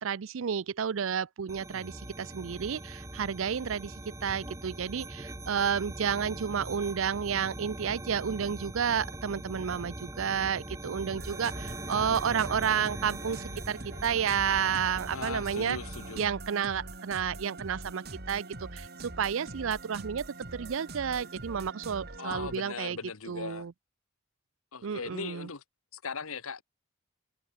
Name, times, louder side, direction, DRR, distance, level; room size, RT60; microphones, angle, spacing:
voice 1, 0.0-15.8 16.2-20.2 20.5-23.0 23.3-23.7 24.8-25.5, right 7 dB, 70° right, 0.5 m, -31 dB
sound 1, 1.5-16.2, right 1 dB, 15° right, 1.3 m, -42 dB
sound 2, 11.2-22.6, right 2 dB, 50° right, 2.8 m, -43 dB
voice 2, 15.1-16.3 22.2-23.7 24.7-25.6 25.9-26.6, left 5 dB, 85° left, 1.3 m, -39 dB
head